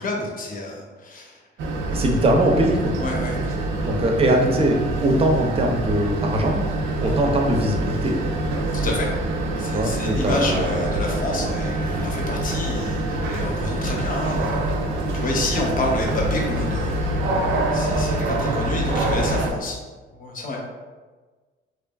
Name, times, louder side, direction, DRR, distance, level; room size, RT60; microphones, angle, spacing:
voice 1, 0.0-1.4 1.9-2.0 3.0-3.4 8.7-9.1 9.6-17.4 17.7-19.8 20.1-20.6, left 2 dB, 45° left, -1 dB, 0.7 m, -29 dB
sound 1, 1.6-19.5, right 1 dB, 85° right, 0.4 m, -25 dB
voice 2, 1.9-2.9 3.8-6.6 7.0-8.1 9.7-10.9, right 1 dB, 30° right, 1 dB, 0.5 m, -21 dB
2.9 x 2.4 x 2.2 m, 1.3 s
cardioid pair, 90°, 20 cm